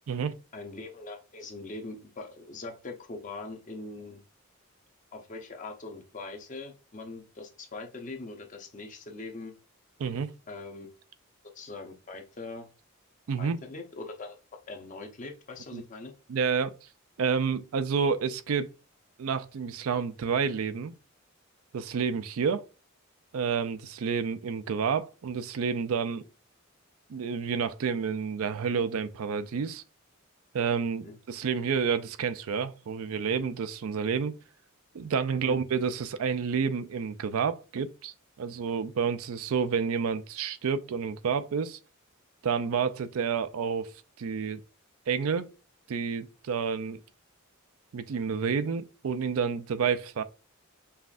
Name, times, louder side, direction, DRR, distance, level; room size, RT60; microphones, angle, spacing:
voice 1, 0.5-4.2 5.1-9.5 10.5-10.9 11.5-12.7 13.4-14.4 14.7-16.1 31.0-31.2 35.3-35.6, left 3 dB, 35° left, 0.7 m, -42 dB
voice 2, 10.0-10.3 13.3-13.6 15.7-15.8 16.3-16.7 17.2-18.7 19.2-20.9 21.7-22.6 23.3-26.2 27.1-29.8 30.5-34.3 34.9-41.8 42.4-44.6 45.1-45.5 45.9-47.0 47.9-50.2, right 6 dB, 80° right, 0.4 m, -29 dB
5.6 x 2.5 x 2.4 m
head